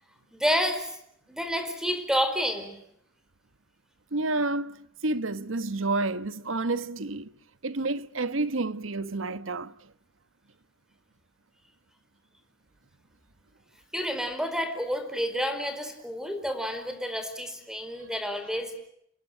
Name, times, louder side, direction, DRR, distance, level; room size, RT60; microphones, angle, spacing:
voice 1, 0.4-0.9 1.3-2.8 13.9-18.7, equal, 5° right, 4.7 m, -29 dB
voice 2, 4.1-4.8 5.0-7.3 7.6-9.7, right 2 dB, 75° right, 1.2 m, -29 dB
29.0 x 20.5 x 9.2 m
head